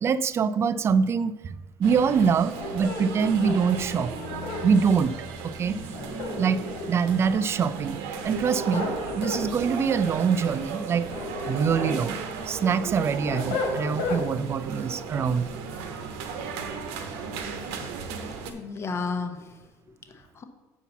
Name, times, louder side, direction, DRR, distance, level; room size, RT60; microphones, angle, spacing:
voice 1, 0.0-4.1 4.6-5.1 5.4-5.8 6.4-6.6 6.9-8.0 8.2-11.1 11.5-12.2 12.5-15.5, right 6 dB, 25° right, 16 dB, 0.3 m, -24 dB
sound 1, 1.8-18.5, right 5 dB, 85° right, 1.1 m, -36 dB
sound 2, 2.5-4.7 5.9-7.0 8.2-9.5 10.9-12.0 12.5-14.2, left 3 dB, 85° left, 2.1 m, -33 dB
voice 2, 18.5-20.4, left 4 dB, 25° left, 7 dB, 0.8 m, -34 dB
7.0 x 4.5 x 6.9 m, 1.2 s
cardioid pair, 140°, 10 cm